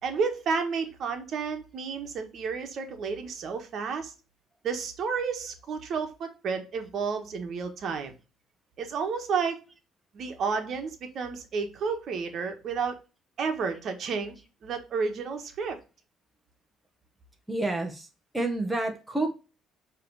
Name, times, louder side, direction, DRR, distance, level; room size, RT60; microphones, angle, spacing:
voice 1, 0.0-4.1 4.6-8.1 8.8-9.6 10.1-13.0 13.4-14.3 14.6-15.8, right 5 dB, 50° right, 1.3 m, -31 dB
voice 2, 17.5-18.1 18.3-19.3, right 2 dB, 5° right, 1.1 m, -29 dB
7.6 x 3.2 x 4.7 m
cardioid pair, 135°, 0 cm